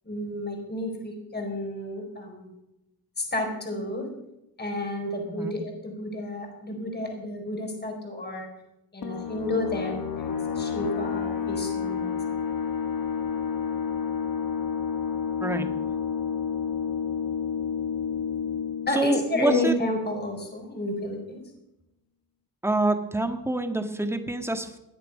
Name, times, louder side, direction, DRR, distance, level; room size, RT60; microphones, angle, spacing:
voice 1, 0.0-2.5 3.2-4.1 4.6-8.5 8.9-12.4 18.9-21.4, left 1 dB, 25° left, 2 dB, 4.4 m, -31 dB
sound 1, 9.0-20.3, left 7 dB, 65° left, 1.5 m, -30 dB
voice 2, 18.9-19.7 22.6-24.8, right 1 dB, 5° right, 6 dB, 1.8 m, -26 dB
19.0 x 10.5 x 5.4 m, 0.90 s
cardioid pair, 80°, 37 cm